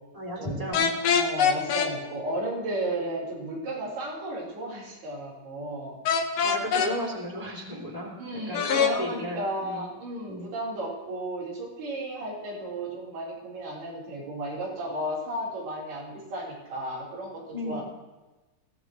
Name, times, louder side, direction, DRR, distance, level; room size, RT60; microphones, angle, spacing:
voice 1, 0.1-1.0 6.4-8.2 8.5-9.9 10.3-10.5 17.5-17.8, equal, 10° left, -3 dB, 2.1 m, -34 dB
sound 1, 0.7-1.9 6.1-6.9 8.5-8.9, left 7 dB, 85° left, 1.4 m, -23 dB
voice 2, 1.0-6.0 8.2-17.8, right 1 dB, 90° right, -6 dB, 6.0 m, -34 dB
20.0 x 16.0 x 3.1 m, 1.2 s
omnidirectional pair, 4.4 m